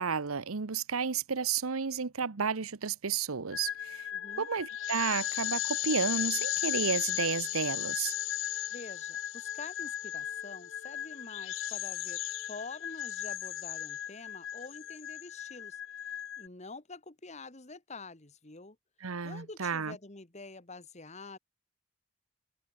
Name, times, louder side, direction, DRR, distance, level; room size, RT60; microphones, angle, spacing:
voice 1, 0.0-4.1 4.4-8.1 19.0-20.0, right 6 dB, 85° right, 0.9 m, -32 dB
sound 1, 3.5-16.5, left 13 dB, 65° left, 0.5 m, -36 dB
voice 2, 4.1-4.5 8.7-18.8 19.2-21.4, left 3 dB, 30° left, 1.7 m, -47 dB
head